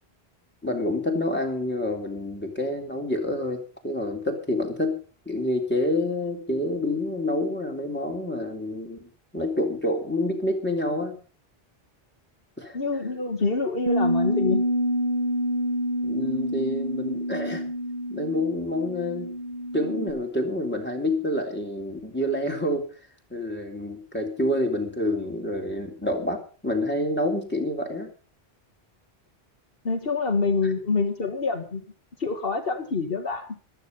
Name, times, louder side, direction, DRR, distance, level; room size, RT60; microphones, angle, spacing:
voice 1, 0.6-5.0 5.3-11.2 12.6-12.8 16.0-17.6 18.1-19.3 19.7-22.8 23.3-28.1, left 1 dB, 10° left, 1 dB, 3.5 m, -28 dB
voice 2, 12.7-14.6 29.8-31.8 32.2-33.6, left 4 dB, 65° left, 3 dB, 1.9 m, -26 dB
Bass guitar, 13.9-20.1, equal, 30° left, 1.8 m, -27 dB
14.5 x 13.0 x 5.5 m, 0.38 s
omnidirectional pair, 1.0 m